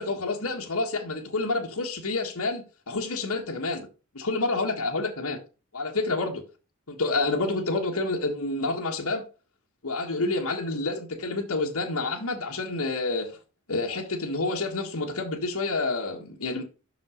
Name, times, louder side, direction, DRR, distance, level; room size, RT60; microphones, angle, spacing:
voice 1, 0.0-3.9 4.1-5.4 5.7-6.4 6.9-9.2 9.8-13.3 13.7-16.6, left 3 dB, 75° left, 1.6 m, -28 dB
6.1 x 5.9 x 4.9 m
head